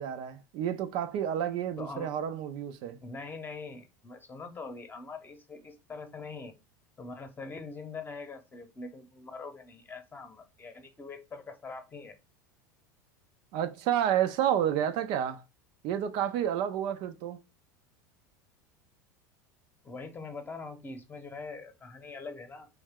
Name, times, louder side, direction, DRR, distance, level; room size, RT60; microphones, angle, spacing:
voice 1, 0.0-3.0 13.5-15.4 15.8-17.4, right 10 dB, 55° right, 0.5 m, -30 dB
voice 2, 1.8-2.1 3.0-6.5 7.0-12.2 19.8-22.7, left 4 dB, 20° left, 0.8 m, -43 dB
3.2 x 2.8 x 3.6 m
hypercardioid pair, 85°, 10 cm